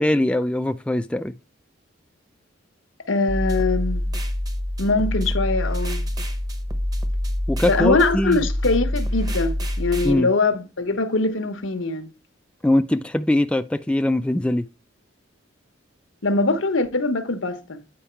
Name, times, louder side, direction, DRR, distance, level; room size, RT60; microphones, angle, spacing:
voice 1, 0.0-1.3 7.5-8.5 10.0-10.3 12.6-14.7, left 1 dB, 5° left, 0.3 m, -21 dB
voice 2, 3.1-4.0 4.8-6.0 7.6-12.1 16.2-17.8, left 3 dB, 85° left, 1.0 m, -22 dB
sound 1, 3.3-10.1, left 1 dB, 20° right, 0.9 m, -26 dB
8.7 x 4.7 x 4.4 m
head